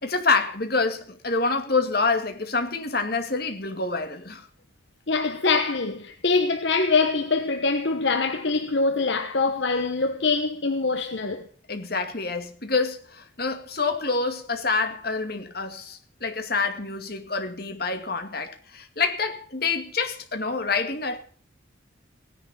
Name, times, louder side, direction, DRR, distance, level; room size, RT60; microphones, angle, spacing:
voice 1, 0.0-4.5 11.7-21.2, left 4 dB, 50° left, 2.2 m, -27 dB
voice 2, 5.1-11.5, left 4 dB, 65° left, 1.1 m, -24 dB
17.5 x 10.5 x 7.1 m
head